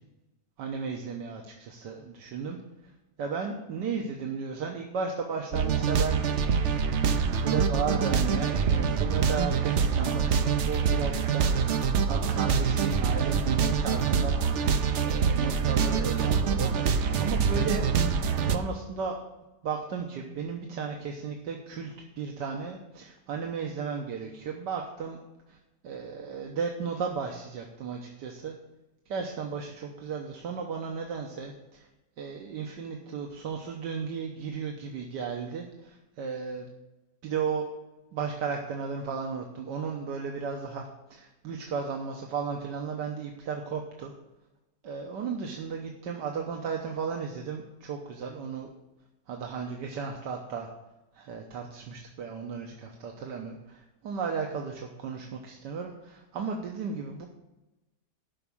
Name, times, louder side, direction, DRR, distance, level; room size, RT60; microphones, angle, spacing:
voice 1, 0.6-2.6 3.2-6.2 7.3-11.6 12.0-14.3 15.0-17.9 18.4-19.2 19.6-25.2 25.5-25.6 25.8-28.5 29.1-31.9 32.2-36.7 37.2-37.7 38.1-44.1 44.8-48.7 49.3-50.7 51.1-57.3, right 5 dB, 85° right, 2 dB, 1.6 m, -34 dB
sound 1, 5.5-18.6, right 6 dB, 60° right, 0.8 m, -25 dB
11.0 x 6.0 x 7.1 m, 1.0 s
omnidirectional pair, 1.8 m